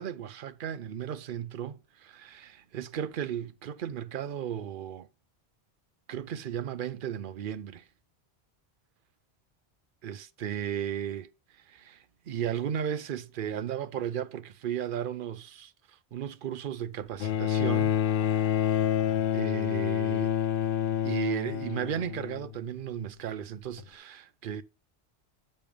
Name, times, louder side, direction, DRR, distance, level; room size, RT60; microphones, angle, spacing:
voice 1, 0.0-5.1 6.1-7.8 10.0-11.3 11.7-12.0 12.3-15.7 16.1-17.9 19.3-20.3 21.0-24.6, right 9 dB, 60° right, 0.7 m, -35 dB
Bowed string instrument, 17.2-22.7 23.8-23.9, left 10 dB, 65° left, 0.7 m, -28 dB
6.8 x 5.5 x 5.0 m
omnidirectional pair, 1.1 m